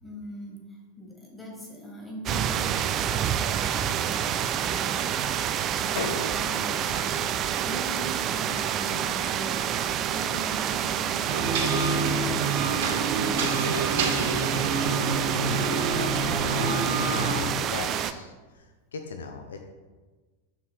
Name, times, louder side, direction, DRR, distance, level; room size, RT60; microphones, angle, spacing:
voice 1, 0.0-4.3 4.6-5.0 5.8-12.1 12.4-14.4, equal, 5° left, -2 dB, 1.7 m, -42 dB
sound 1, 2.3-18.1, right 9 dB, 30° right, 0.3 m, -28 dB
sound 2, 6.0-8.7, left 3 dB, 40° left, 1.4 m, -40 dB
sound 3, 11.3-17.4, right 3 dB, 55° right, 0.8 m, -27 dB
voice 2, 17.0-18.7 18.9-19.7, left 5 dB, 65° left, 5 dB, 0.5 m, -38 dB
7.0 x 6.1 x 2.2 m, 1.3 s
figure-of-eight pair, 90°, 0 cm